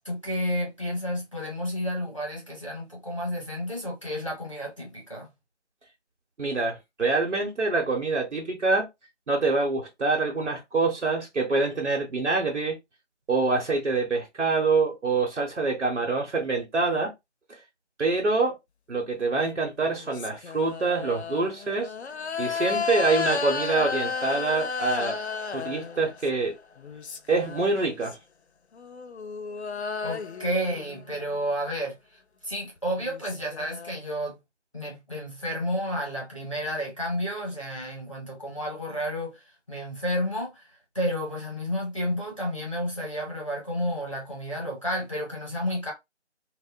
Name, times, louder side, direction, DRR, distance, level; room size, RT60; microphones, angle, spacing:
voice 1, 0.0-5.3 30.0-34.4 34.7-45.9, equal, 30° left, 0.7 m, -31 dB
voice 2, 6.4-8.9 9.3-12.8 13.3-17.1 18.0-18.6 18.9-21.9 22.4-25.2 25.5-26.6 27.3-28.2, right 3 dB, 80° right, 0.9 m, -25 dB
sound 1, 19.5-26.4 26.8-28.2 28.7-31.4 32.7-32.8 33.0-33.9, left 5 dB, 65° left, 0.5 m, -33 dB
2.6 x 2.0 x 2.4 m
figure-of-eight pair, 165°, 35 cm